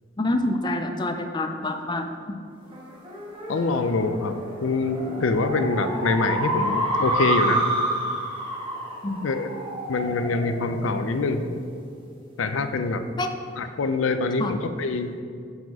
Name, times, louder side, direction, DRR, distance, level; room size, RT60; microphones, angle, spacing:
voice 1, 0.2-2.4 9.0-9.3 13.2-13.3 14.4-14.5, left 1 dB, 20° left, 6 dB, 0.4 m, -27 dB
sound 1, 2.7-11.6, right 1 dB, 25° right, 1.4 m, -29 dB
voice 2, 3.5-7.6 9.2-9.5 9.9-11.6 12.4-13.0 13.6-15.2, left 3 dB, 85° left, 9 dB, 0.5 m, -25 dB
8.1 x 4.8 x 4.8 m, 2.3 s
head